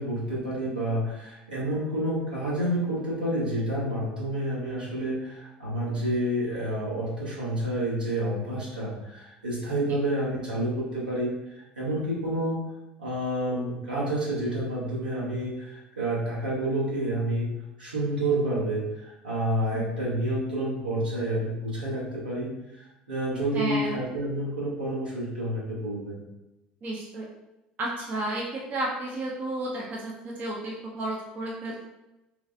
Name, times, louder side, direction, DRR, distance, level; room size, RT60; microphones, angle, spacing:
voice 1, 0.0-12.6 13.0-17.5 17.8-26.2, right 1 dB, 85° right, -8 dB, 1.2 m, -29 dB
voice 2, 23.5-24.0 26.8-27.2 27.8-31.8, right 2 dB, 40° right, -3 dB, 0.6 m, -32 dB
3.2 x 2.3 x 2.6 m, 0.95 s
figure-of-eight pair, 70°, 5 cm